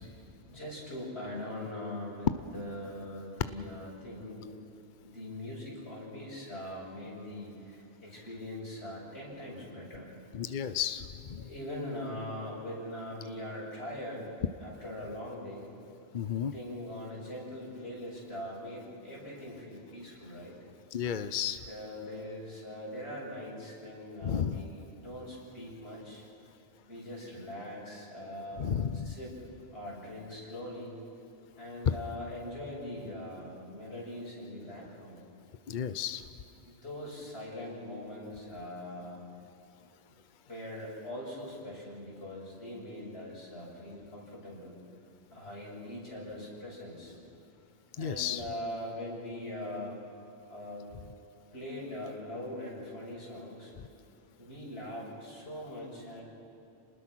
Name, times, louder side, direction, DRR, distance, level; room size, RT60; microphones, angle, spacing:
voice 1, 0.5-4.5 5.0-10.1 11.4-14.3 14.6-15.7 16.4-20.6 21.7-26.2 26.9-29.4 29.7-30.9 31.6-35.2 36.7-39.3 40.5-44.8 45.3-47.2 48.0-50.0 50.5-50.9 51.5-53.7 54.4-56.2, left 1 dB, 85° left, -4 dB, 7.1 m, -41 dB
voice 2, 10.3-11.0 11.3-11.4 16.1-16.5 20.9-21.6 24.2-24.6 28.6-29.1 35.7-36.2 48.0-48.4, left 8 dB, 50° left, 12 dB, 0.8 m, -32 dB
29.5 x 20.0 x 6.2 m, 2.9 s
omnidirectional pair, 1.1 m